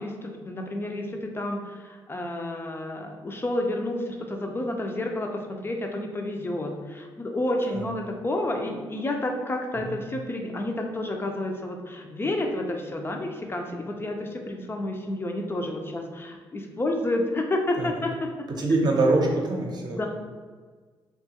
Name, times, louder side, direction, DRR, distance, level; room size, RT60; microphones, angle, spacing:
voice 1, 0.0-18.5 20.0-20.1, left 1 dB, 25° left, 2 dB, 0.4 m, -30 dB
voice 2, 18.6-20.1, right 2 dB, 50° right, 0 dB, 0.6 m, -24 dB
2.9 x 2.3 x 2.8 m, 1.5 s
cardioid pair, 80°, 9 cm